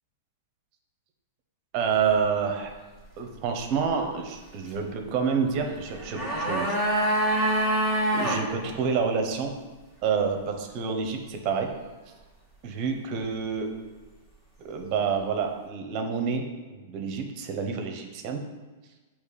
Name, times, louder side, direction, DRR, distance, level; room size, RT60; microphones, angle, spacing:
voice 1, 1.7-2.7 3.2-6.8 8.1-9.5 10.0-11.7 12.6-13.7 14.6-16.4 16.7-18.4, right 6 dB, 45° right, 4 dB, 0.8 m, -28 dB
sound 1, 5.8-8.4 8.7-8.8, right 1 dB, 5° left, 1.6 m, -25 dB
8.0 x 3.0 x 4.1 m, 1.3 s
hypercardioid pair, 135°, 0 cm